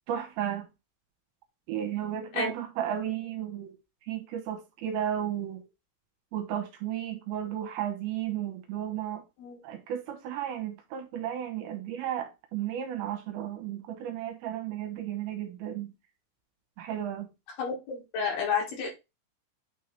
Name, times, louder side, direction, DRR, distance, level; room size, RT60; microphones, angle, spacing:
voice 1, 0.1-0.6 1.7-3.7 4.1-5.6 6.3-9.2 9.6-15.9 16.8-17.3, right 10 dB, 75° right, 3.1 m, -34 dB
voice 2, 17.6-18.9, left 5 dB, 60° left, 3.6 m, -31 dB
9.2 x 3.5 x 3.4 m
omnidirectional pair, 5.5 m